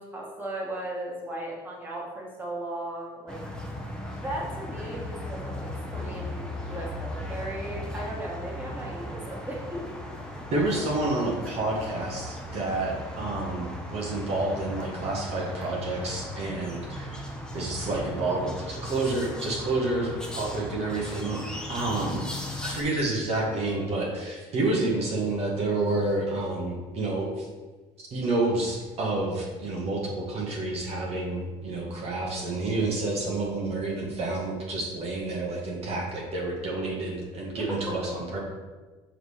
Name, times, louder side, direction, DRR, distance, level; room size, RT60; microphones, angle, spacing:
voice 1, 0.0-3.4 4.2-9.9 36.7-37.0 37.7-38.0, right 1 dB, 15° right, -4 dB, 1.7 m, -36 dB
sound 1, 3.3-22.8, left 1 dB, 5° left, 1.1 m, -37 dB
voice 2, 10.5-17.2 17.5-21.4 21.7-22.3 22.6-27.5 28.1-38.4, right 2 dB, 50° right, -3 dB, 1.5 m, -29 dB
5.1 x 3.8 x 4.9 m, 1.3 s
supercardioid pair, 90°, 13 cm